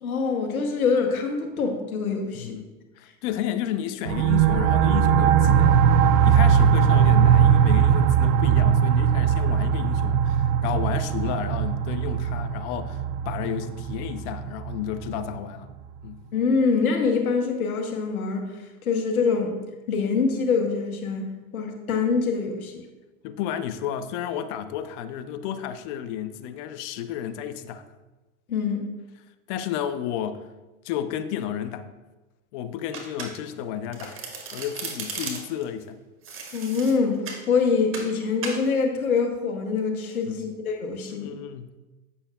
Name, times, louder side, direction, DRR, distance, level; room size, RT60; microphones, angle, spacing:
voice 1, 0.0-2.5 16.3-18.5 18.8-19.6 19.9-22.8 28.5-28.9 36.5-41.3, left 5 dB, 90° left, 3 dB, 1.0 m, -25 dB
voice 2, 3.0-5.8 6.2-15.7 16.0-16.2 23.2-27.8 29.5-30.5 30.8-31.9 32.5-34.2 34.5-36.0 40.3-40.5 41.1-41.8, left 10 dB, 55° left, 10 dB, 0.6 m, -32 dB
sound 1, 4.1-15.4, right 8 dB, 65° right, 0.5 m, -20 dB
Domestic sounds home sounds, 32.9-33.6 33.9-35.6 36.2-37.5 37.9-38.1 38.4-38.6, right 4 dB, 30° right, 1.3 m, -36 dB
8.3 x 5.5 x 2.3 m, 1.1 s
hypercardioid pair, 90°, 42 cm